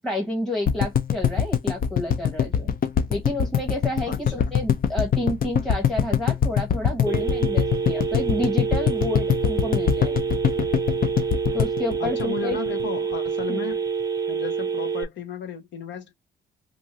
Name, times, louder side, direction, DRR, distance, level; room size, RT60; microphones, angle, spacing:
voice 1, 0.0-2.7 3.1-10.2 11.5-12.6 13.5-13.6, left 1 dB, ahead, 1.1 m, -30 dB
sound 1, 0.7-12.8 13.1-13.2 13.4-13.5, left 8 dB, 45° left, 0.6 m, -22 dB
voice 2, 4.0-4.5 12.0-13.9 14.3-16.1, left 7 dB, 65° left, 1.0 m, -35 dB
Telephone, 7.1-15.0, right 6 dB, 20° right, 0.6 m, -27 dB
2.6 x 2.5 x 3.0 m
cardioid pair, 90°, 20 cm